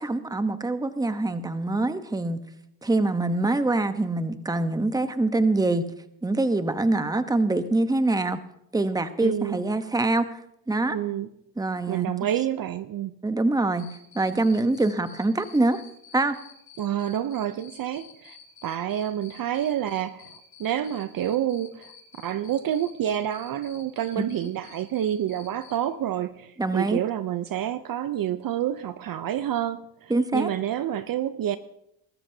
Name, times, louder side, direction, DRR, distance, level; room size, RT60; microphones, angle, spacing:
voice 1, 0.0-2.4 2.8-5.8 6.2-8.4 8.7-10.4 10.7-11.2 11.6-12.1 13.2-13.9 14.1-15.8 16.1-16.4 24.2-24.5 26.6-27.0 30.1-30.5, right 2 dB, 5° right, 1.0 m, -24 dB
voice 2, 9.2-9.6 10.9-11.3 11.9-13.1 16.8-18.4 18.6-31.6, right 11 dB, 45° right, 0.7 m, -28 dB
Cricket, 13.8-25.8, left 7 dB, 60° left, 5.3 m, -49 dB
22.0 x 13.0 x 2.8 m
supercardioid pair, 85°, 50 cm